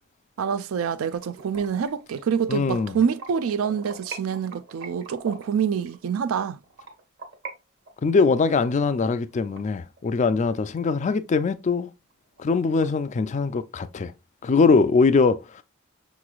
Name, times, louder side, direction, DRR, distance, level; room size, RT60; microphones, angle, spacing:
voice 1, 0.4-6.6, right 7 dB, 75° right, 0.4 m, -26 dB
sound 1, 1.1-7.5 7.9-10.4 10.8-10.9 11.3-11.4 11.7-11.8 12.1-12.8, right 4 dB, 55° right, 1.1 m, -43 dB
voice 2, 2.5-3.0 8.0-11.9 12.4-14.1 14.4-15.6, left 4 dB, 35° left, 0.3 m, -22 dB
5.9 x 3.1 x 2.3 m
head